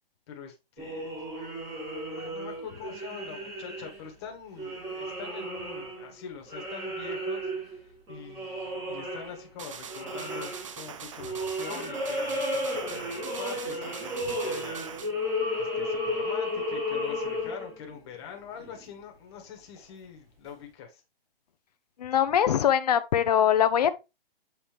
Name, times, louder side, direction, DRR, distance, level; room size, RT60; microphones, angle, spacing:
voice 1, 0.3-1.2 2.1-21.0, left 7 dB, 25° left, 1.5 m, -44 dB
sound 1, 0.8-4.1 4.6-6.2 6.5-9.5 9.9-10.8 11.2-18.2 18.6-18.8 19.8-19.9 20.4-20.5, left 1 dB, 10° right, 1.5 m, -33 dB
sound 2, 9.6-15.1, right 7 dB, 35° right, 0.5 m, -42 dB
voice 2, 22.0-23.9, left 9 dB, 40° left, 0.7 m, -22 dB
7.9 x 4.1 x 3.4 m
hypercardioid pair, 160°, 30 cm